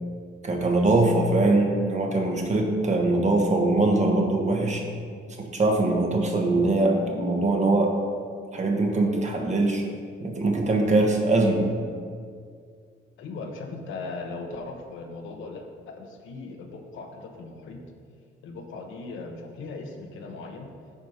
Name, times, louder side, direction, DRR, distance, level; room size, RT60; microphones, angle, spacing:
voice 1, 0.4-4.8 5.4-7.9 8.5-9.8 10.2-11.7, right 2 dB, 35° right, 2 dB, 1.4 m, -22 dB
voice 2, 13.2-17.8 18.4-20.7, left 3 dB, 80° left, 3 dB, 1.1 m, -38 dB
8.3 x 5.2 x 4.9 m, 2.1 s
cardioid pair, 90°, 20 cm